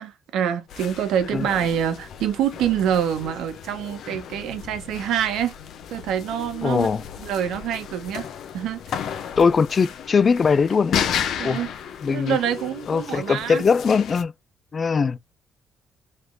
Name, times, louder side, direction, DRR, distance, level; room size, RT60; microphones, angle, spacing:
voice 1, 0.0-5.5 5.9-6.9 7.2-8.3 8.5-9.0 11.4-11.7 12.1-13.6, right 9 dB, 85° right, 0.9 m, -26 dB
sound 1, 0.7-14.2, left 8 dB, 75° left, 0.7 m, -34 dB
voice 2, 6.6-7.0 9.4-11.0 11.4-11.6 12.0-12.4 12.9-14.3 14.7-15.2, left 5 dB, 40° left, 0.3 m, -20 dB
3.3 x 3.3 x 3.9 m
cardioid pair, 90°, 0 cm